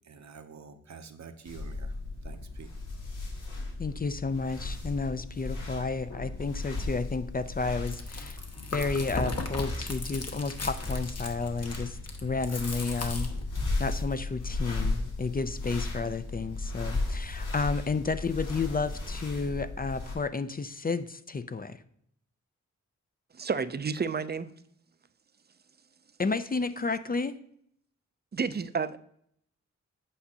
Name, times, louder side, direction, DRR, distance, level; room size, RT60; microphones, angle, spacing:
voice 1, 0.1-1.9 2.2-2.7, right 5 dB, 60° right, 0.8 m, -47 dB
sound 1, 1.5-20.1, left 2 dB, 75° left, 2.1 m, -36 dB
voice 2, 3.8-8.4 8.7-13.3 13.8-21.8 26.2-27.4, left 4 dB, 30° left, 0.5 m, -31 dB
Chewing mastication, 7.7-13.8, left 2 dB, 55° left, 1.2 m, -37 dB
voice 3, 23.3-24.5 28.3-29.0, right 5 dB, 30° right, 0.5 m, -30 dB
8.4 x 5.1 x 2.8 m
cardioid pair, 40°, 31 cm